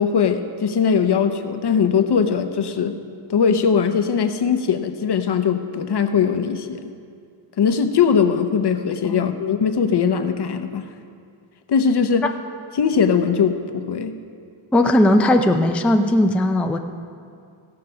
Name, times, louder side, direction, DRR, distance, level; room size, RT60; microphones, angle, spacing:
voice 1, 0.0-2.9 3.3-6.9 7.6-10.9 11.7-12.3 12.7-14.1, left 6 dB, 55° left, 8 dB, 0.8 m, -20 dB
voice 2, 14.7-16.8, left 1 dB, 5° left, 5 dB, 0.4 m, -17 dB
16.0 x 6.5 x 5.6 m, 2.3 s
wide cardioid pair, 115°, 50 cm